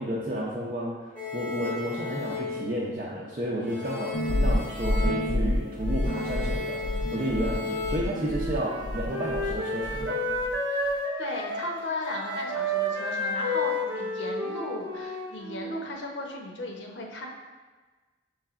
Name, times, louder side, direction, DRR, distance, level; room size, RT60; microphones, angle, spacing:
voice 1, 0.0-10.2, equal, 40° right, -6 dB, 0.5 m, -32 dB
sound 1, 1.2-3.3 3.6-8.0, left 4 dB, 10° left, 0.6 m, -35 dB
sound 2, 4.1-9.6 9.8-10.6, left 1 dB, 50° left, 0.4 m, -29 dB
Wind instrument woodwind instrument, 8.1-15.9, equal, 80° right, 0.7 m, -31 dB
voice 2, 10.6-17.3, left 2 dB, 75° left, 0 dB, 0.7 m, -36 dB
6.7 x 3.1 x 2.4 m, 1.3 s
head